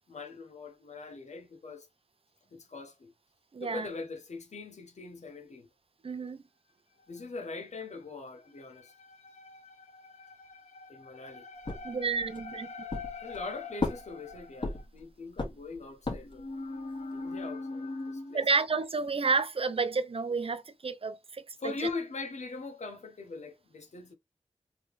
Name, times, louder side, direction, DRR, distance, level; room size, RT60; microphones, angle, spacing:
voice 1, 0.1-1.9 2.5-3.1 3.6-5.7 6.9-18.5 21.6-24.1, left 3 dB, 80° left, 0.9 m, -41 dB
voice 2, 3.5-3.9 6.0-6.4 11.8-12.7 18.3-21.7, right 4 dB, 55° right, 0.6 m, -30 dB
sound 1, 11.7-12.5 12.9-13.5 13.8-15.0 15.4-16.5, left 3 dB, 45° left, 1.4 m, -35 dB
3.3 x 2.9 x 3.2 m
wide cardioid pair, 55°, 12 cm